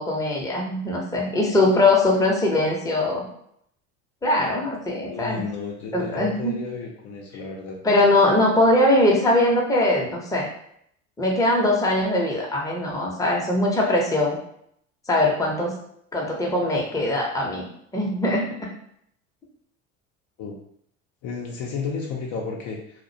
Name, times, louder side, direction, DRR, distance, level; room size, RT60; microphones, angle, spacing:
voice 1, 0.0-3.3 4.2-5.4 5.9-6.5 7.8-10.5 11.2-14.4 15.1-15.7 16.1-17.6 17.9-18.7, left 1 dB, 10° left, -2 dB, 0.7 m, -21 dB
voice 2, 5.1-7.8 20.4-20.6 21.2-23.0, left 4 dB, 50° left, -1 dB, 0.6 m, -32 dB
2.3 x 2.1 x 2.6 m, 0.69 s
hypercardioid pair, 80°, 37 cm